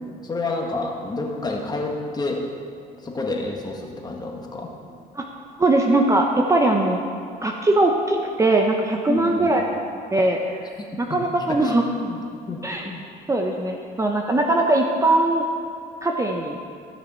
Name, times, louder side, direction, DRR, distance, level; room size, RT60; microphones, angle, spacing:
voice 1, 0.2-2.5 3.0-4.8 9.0-9.5 11.5-11.7 12.0-12.2 12.5-13.0, left 2 dB, 25° left, 0 dB, 1.4 m, -29 dB
voice 2, 5.6-7.0 7.4-9.6 10.1-10.4 11.0-11.8 12.6-12.9 13.3-15.4 16.0-16.6, right 2 dB, 20° right, 2 dB, 0.7 m, -20 dB
13.5 x 6.6 x 4.4 m, 2.6 s
cardioid pair, 110°, 17 cm